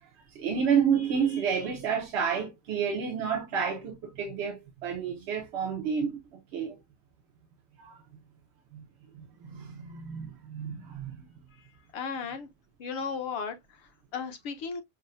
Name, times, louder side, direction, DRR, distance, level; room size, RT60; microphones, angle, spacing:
voice 1, 0.3-6.2 6.5-6.8 7.8-8.0 8.7-8.8 9.1-11.3, right 7 dB, 25° right, 0.3 m, -30 dB
voice 2, 11.9-12.5 12.8-14.8, left 6 dB, 40° left, 0.4 m, -35 dB
5.5 x 2.0 x 2.3 m
cardioid pair, 180°, 49 cm